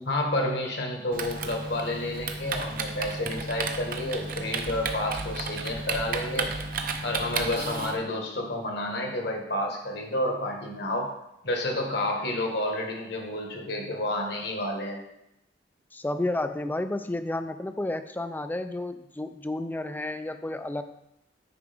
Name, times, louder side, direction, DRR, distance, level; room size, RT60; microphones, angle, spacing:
voice 1, 0.1-6.5 7.0-11.1 11.4-15.0, left 1 dB, 60° left, 1 dB, 1.4 m, -30 dB
Typing, 1.1-8.0, right 4 dB, 50° right, 0.6 m, -33 dB
voice 2, 15.9-20.8, left 2 dB, 10° left, 10 dB, 0.3 m, -31 dB
9.6 x 4.9 x 3.5 m, 0.84 s
head